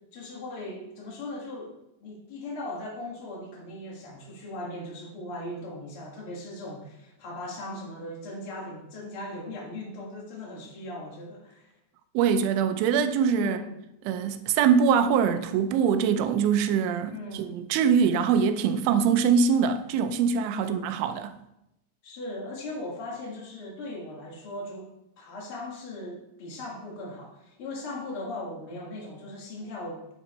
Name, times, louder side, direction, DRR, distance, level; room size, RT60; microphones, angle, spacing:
voice 1, 0.1-11.7 13.3-13.7 17.1-17.6 20.5-20.9 22.0-24.9 25.2-30.1, left 1 dB, 70° left, 1.3 m, -38 dB
voice 2, 12.1-13.6 14.1-21.3, right 7 dB, 85° right, 3.2 m, -23 dB
9.7 x 8.9 x 4.3 m
omnidirectional pair, 5.4 m